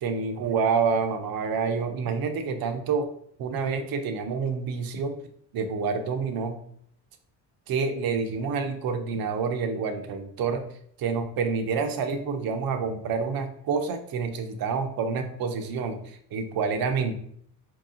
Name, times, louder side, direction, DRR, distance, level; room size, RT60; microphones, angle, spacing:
voice 1, 0.0-3.1 3.4-5.2 5.5-6.6 7.7-10.7 11.0-17.1, right 5 dB, 65° right, 6 dB, 0.8 m, -28 dB
4.6 x 2.9 x 3.7 m, 0.65 s
cardioid pair, 115°, 38 cm